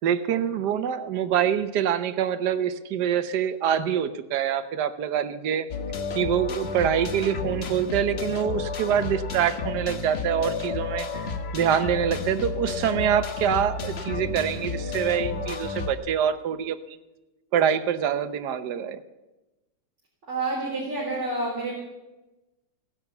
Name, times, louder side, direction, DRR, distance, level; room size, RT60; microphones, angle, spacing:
voice 1, 0.0-5.7 6.1-11.2 11.5-17.0 17.5-19.0, right 9 dB, 60° right, 10 dB, 1.3 m, -25 dB
sound 1, 5.7-15.9, left 4 dB, 40° left, 1.0 m, -31 dB
voice 2, 20.3-21.7, right 2 dB, 35° right, -4 dB, 3.8 m, -28 dB
16.0 x 11.0 x 8.0 m, 1.1 s
omnidirectional pair, 2.2 m